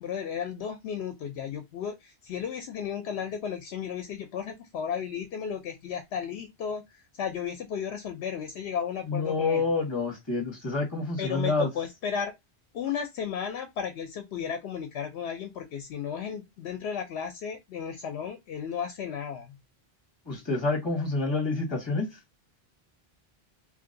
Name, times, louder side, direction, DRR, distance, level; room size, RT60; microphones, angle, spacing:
voice 1, 0.0-9.7 11.2-12.3 12.7-19.6, left 7 dB, 80° left, 0.9 m, -34 dB
voice 2, 9.1-11.7 20.3-22.1, left 3 dB, 25° left, 1.3 m, -28 dB
2.9 x 2.8 x 2.5 m
omnidirectional pair, 1.1 m